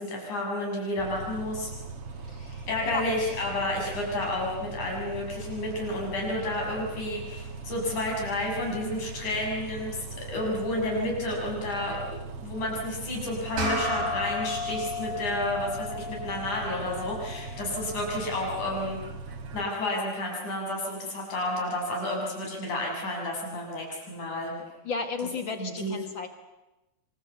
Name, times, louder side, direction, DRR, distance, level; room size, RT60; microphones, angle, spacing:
voice 1, 0.0-1.7 2.7-19.0 19.5-24.5 25.6-26.0, left 1 dB, 80° left, -1 dB, 8.2 m, -31 dB
Bus, 1.0-19.7, right 4 dB, 55° right, 2.5 m, -40 dB
voice 2, 2.3-3.0 24.9-26.3, left 4 dB, 45° left, 7 dB, 2.1 m, -34 dB
sound 1, 13.6-18.3, left 2 dB, 85° right, 6.6 m, -34 dB
27.0 x 24.5 x 8.3 m, 1.0 s
omnidirectional pair, 3.4 m